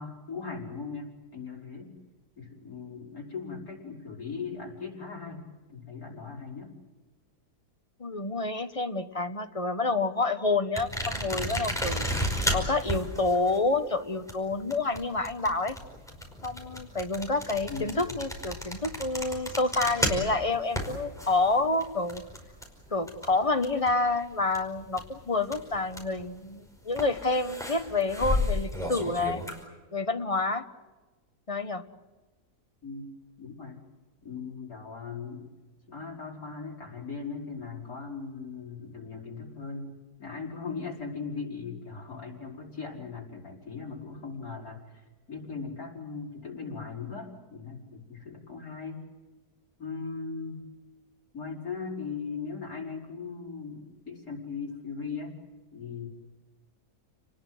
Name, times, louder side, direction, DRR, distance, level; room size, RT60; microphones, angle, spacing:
voice 1, 0.0-1.9 2.4-5.4 5.7-6.7 17.7-18.2 32.8-33.0 33.4-33.8 34.2-35.5 35.9-39.9 40.2-49.0 49.8-50.6 51.3-55.3 55.7-56.1, left 5 dB, 60° left, -2 dB, 6.2 m, -39 dB
voice 2, 8.0-12.1 12.5-15.8 16.4-22.2 22.9-29.4 29.9-30.7 31.5-31.8, left 3 dB, 25° left, 8 dB, 1.1 m, -28 dB
sound 1, 10.8-24.1 24.4-26.2 26.9-29.6, left 1 dB, ahead, 5.2 m, -33 dB
30.0 x 20.5 x 8.0 m, 1.3 s
omnidirectional pair, 1.7 m